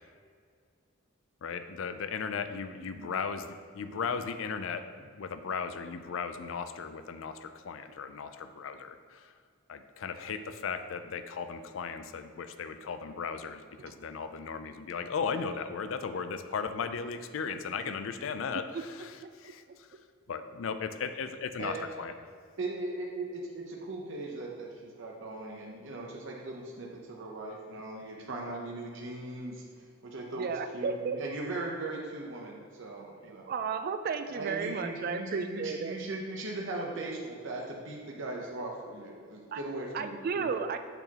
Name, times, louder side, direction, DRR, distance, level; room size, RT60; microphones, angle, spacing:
voice 1, 1.4-9.3 9.7-19.9 20.3-22.1, left 5 dB, 70° left, 10 dB, 0.4 m, -36 dB
voice 2, 22.6-29.6 30.0-33.5 34.3-40.5, right 2 dB, 65° right, -1 dB, 0.8 m, -39 dB
voice 3, 30.4-31.2 33.4-36.0 39.5-39.6 39.9-40.8, right 5 dB, 50° right, 9 dB, 0.3 m, -33 dB
6.8 x 6.0 x 2.9 m, 2.2 s
head